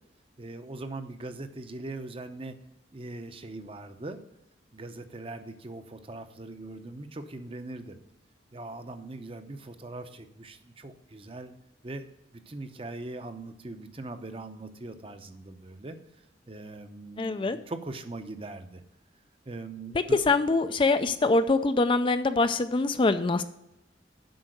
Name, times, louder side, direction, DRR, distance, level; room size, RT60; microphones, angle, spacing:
voice 1, 0.4-2.6 2.9-4.2 4.7-8.0 8.5-11.5 11.8-12.1 12.3-16.0 16.5-18.8 19.5-20.2, right 2 dB, 30° right, 8 dB, 0.7 m, -41 dB
voice 2, 17.2-17.6 20.3-23.4, left 3 dB, 25° left, 11 dB, 0.4 m, -24 dB
7.9 x 5.6 x 7.7 m, 0.87 s
head